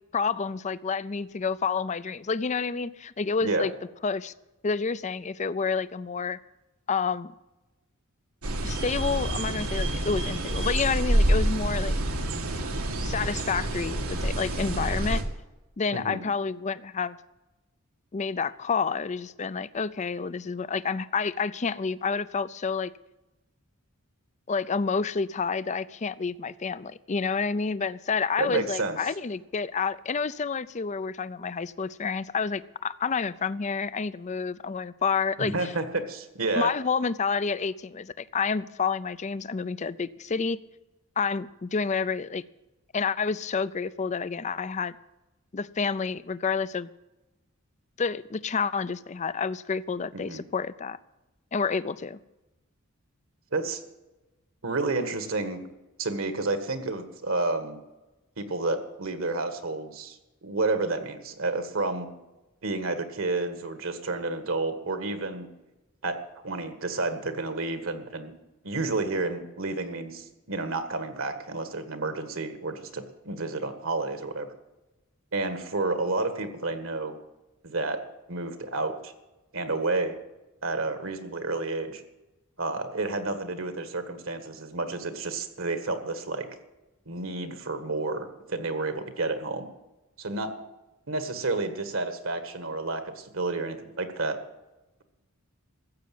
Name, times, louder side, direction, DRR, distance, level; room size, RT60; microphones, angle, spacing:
voice 1, 0.1-3.7 4.0-4.3 4.6-6.4 6.9-7.3 8.6-12.0 13.0-15.2 15.8-17.2 18.1-22.9 24.5-35.7 36.5-40.6 41.2-42.4 42.9-44.9 45.5-46.9 48.0-51.0 51.5-52.2, left 5 dB, 35° left, 16 dB, 0.5 m, -29 dB
sound 1, 8.4-15.2, right 1 dB, 85° right, 2.1 m, -27 dB
voice 2, 15.9-16.2 28.4-29.0 35.4-36.7 50.1-50.4 53.5-53.8 54.6-55.6 56.0-57.8 58.4-62.1 62.6-65.5 66.0-66.2 66.4-68.3 68.6-74.5 75.3-77.2 77.6-78.0 78.3-79.1 79.5-80.2 80.6-82.0 82.6-86.5 87.1-89.7 90.2-90.5 91.1-94.4, right 3 dB, 65° right, 8 dB, 1.7 m, -30 dB
14.5 x 8.0 x 9.3 m, 1.0 s
head